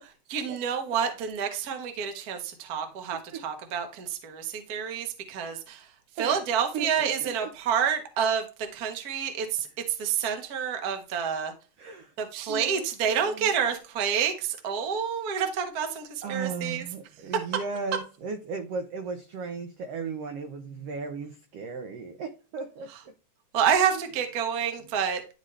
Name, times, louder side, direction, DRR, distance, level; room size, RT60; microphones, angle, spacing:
voice 1, 0.0-5.9 6.2-8.4 8.7-11.5 12.2-16.8 23.5-25.2, right 7 dB, 65° right, 0.9 m, -28 dB
voice 2, 6.7-7.5 11.8-12.1 12.5-13.5 16.2-22.9 23.9-24.0 24.8-24.9, right 5 dB, 85° right, 1.4 m, -36 dB
11.5 x 4.0 x 3.2 m
omnidirectional pair, 3.8 m